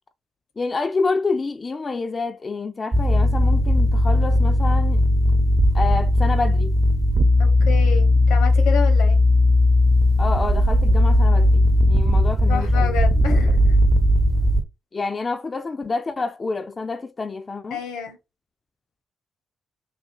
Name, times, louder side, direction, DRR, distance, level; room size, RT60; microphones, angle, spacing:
voice 1, 0.6-5.0 5.7-6.7 10.2-12.9 14.9-17.8, left 4 dB, 40° left, 0.4 m, -28 dB
sound 1, 2.9-14.6, left 1 dB, 40° right, 0.8 m, -17 dB
voice 2, 7.4-9.2 12.5-13.8 17.7-18.2, left 6 dB, 85° left, 1.0 m, -29 dB
3.4 x 2.4 x 4.3 m
hypercardioid pair, 45°, 0 cm